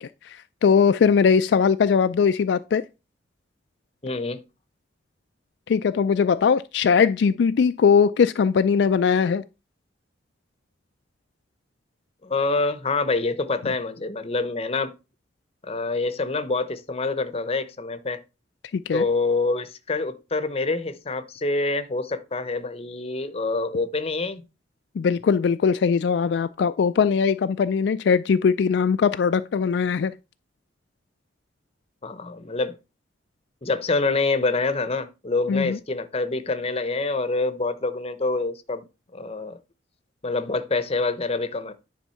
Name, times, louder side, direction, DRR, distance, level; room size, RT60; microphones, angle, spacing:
voice 1, 0.0-2.8 5.7-9.4 18.7-19.0 25.0-30.1 35.5-35.8, left 6 dB, 65° left, 0.3 m, -20 dB
voice 2, 4.0-4.4 12.2-14.9 15.6-18.2 18.9-24.4 32.0-32.7 33.6-38.8 39.1-39.6 40.2-41.7, left 3 dB, 35° left, 0.7 m, -26 dB
10.0 x 3.6 x 5.6 m
head